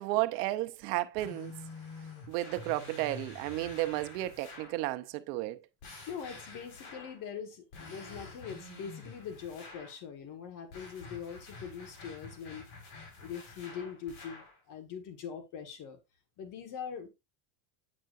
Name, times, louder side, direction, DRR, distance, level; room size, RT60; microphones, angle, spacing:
voice 1, 0.0-1.5 2.3-5.6, right 16 dB, 85° right, 0.9 m, -33 dB
sound 1, 1.2-4.8 5.8-7.2 7.7-10.0 10.7-14.6, left 3 dB, 85° left, 4.4 m, -48 dB
voice 2, 6.1-12.7 13.2-16.0 16.4-17.1, left 7 dB, 40° left, 1.6 m, -42 dB
8.8 x 5.6 x 2.5 m
cardioid pair, 170°, 46 cm